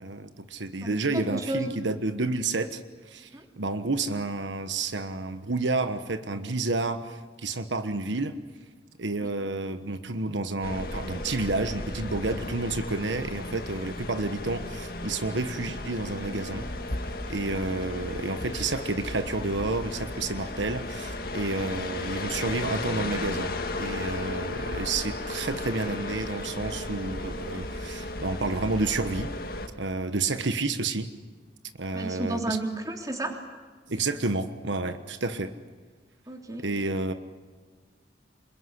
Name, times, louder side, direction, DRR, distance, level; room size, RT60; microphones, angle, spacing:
voice 1, 0.0-3.3 3.6-8.3 9.0-16.7 17.0-29.3 29.8-31.1 31.8-32.6 33.9-35.5 36.6-37.1, right 3 dB, 85° right, 9 dB, 1.3 m, -30 dB
voice 2, 0.8-1.7 3.3-3.5 9.2-9.3 31.9-33.4 36.3-36.6, right 2 dB, 20° right, 3 dB, 3.3 m, -32 dB
sound 1, 10.6-29.7, left 2 dB, 50° left, 2.2 m, -35 dB
27.5 x 22.0 x 9.9 m, 1.4 s
head